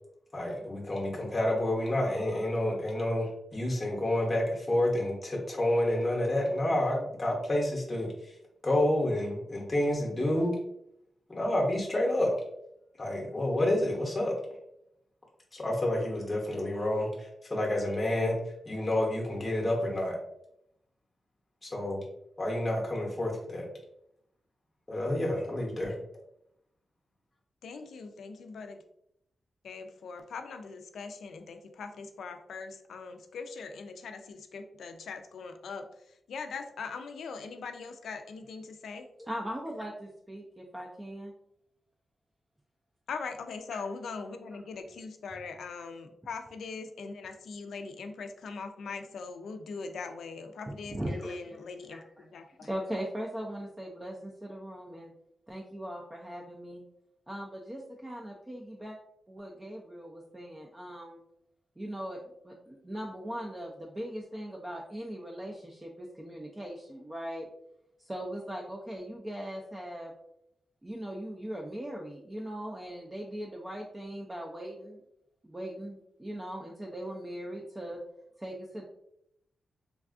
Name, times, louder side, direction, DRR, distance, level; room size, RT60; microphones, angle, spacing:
voice 1, 0.3-8.4 8.6-10.5 11.3-12.3 13.0-14.3 15.5-18.4 18.7-20.2 21.6-22.0 22.4-23.7 24.9-25.9, left 1 dB, 20° left, -2 dB, 0.7 m, -29 dB
voice 2, 27.6-28.8 29.6-39.1 43.1-52.7, left 4 dB, 85° left, 6 dB, 0.3 m, -41 dB
voice 3, 39.2-41.3 43.7-43.8 44.3-44.6 50.8-51.6 51.9-52.2 52.6-55.1 55.5-56.8 57.3-59.0 59.3-61.2 61.8-62.2 62.4-67.5 68.0-70.1 70.8-75.0 75.4-78.0 78.4-78.8, equal, 15° right, -2 dB, 0.3 m, -39 dB
3.4 x 2.3 x 2.4 m, 0.77 s
wide cardioid pair, 120°, 0 cm